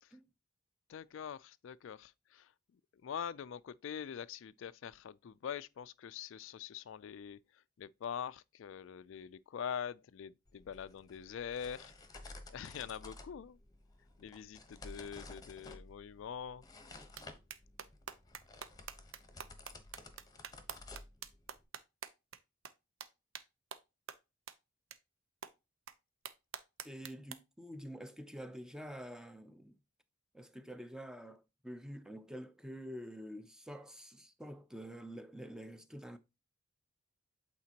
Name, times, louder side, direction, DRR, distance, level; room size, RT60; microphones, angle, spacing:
voice 1, 0.9-2.5 3.0-7.4 7.8-11.9 12.5-13.6 14.2-16.6, left 8 dB, 60° left, 0.3 m, -44 dB
sound 1, 10.5-21.6, left 2 dB, 20° left, 0.9 m, -53 dB
sound 2, 17.2-17.3 17.5-22.4 22.6-22.7 23.0-23.1 23.3-23.4 23.7-23.8 24.1-24.2 24.5-24.6 24.9-25.0 25.4-25.5 25.9-26.0 26.3-27.3, right 7 dB, 70° right, 0.7 m, -45 dB
voice 2, 26.8-29.8 30.3-36.2, equal, 5° right, 0.6 m, -47 dB
8.5 x 4.2 x 2.9 m
head